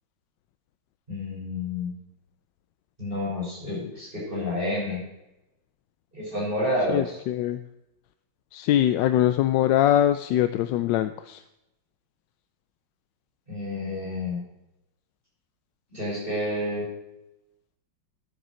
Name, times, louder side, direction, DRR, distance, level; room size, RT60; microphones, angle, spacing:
voice 1, 1.1-2.0 3.0-5.0 6.1-7.2 13.5-14.4 15.9-16.9, left 1 dB, 25° right, -7 dB, 6.5 m, -29 dB
voice 2, 6.9-7.6 8.5-11.4, left 11 dB, 75° left, 10 dB, 1.2 m, -22 dB
13.0 x 8.1 x 6.3 m, 0.91 s
omnidirectional pair, 2.1 m